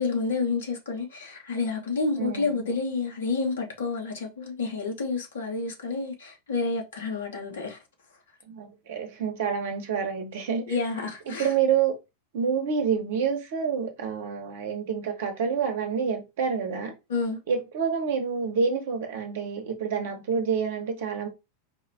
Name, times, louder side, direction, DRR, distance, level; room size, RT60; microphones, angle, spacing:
voice 1, 0.0-7.8 10.7-11.5 17.1-17.4, left 4 dB, 65° left, 1.1 m, -29 dB
voice 2, 2.2-2.7 8.5-10.7 11.3-12.0 12.3-16.9 17.5-21.3, right 6 dB, 55° right, 0.9 m, -28 dB
4.8 x 2.0 x 2.7 m
figure-of-eight pair, 90°, 0 cm